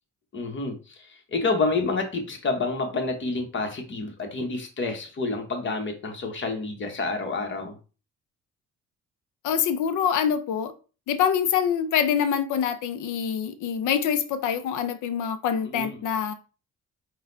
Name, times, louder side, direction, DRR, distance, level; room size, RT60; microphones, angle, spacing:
voice 1, 0.3-7.8 15.7-16.0, left 3 dB, 40° left, 3 dB, 1.2 m, -29 dB
voice 2, 9.4-10.7 11.1-16.3, left 8 dB, 85° left, 11 dB, 0.6 m, -25 dB
4.1 x 2.3 x 3.9 m, 0.35 s
cardioid pair, 90°, 30 cm